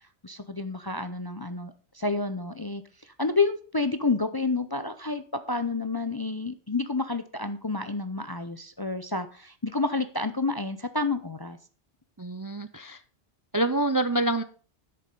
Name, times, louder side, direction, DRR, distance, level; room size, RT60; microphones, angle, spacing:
voice 1, 0.2-11.6, left 3 dB, 25° left, 10 dB, 0.5 m, -29 dB
voice 2, 12.2-13.0 13.5-14.4, right 2 dB, 25° right, 10 dB, 0.5 m, -26 dB
11.0 x 6.8 x 5.3 m, 0.41 s
omnidirectional pair, 1.1 m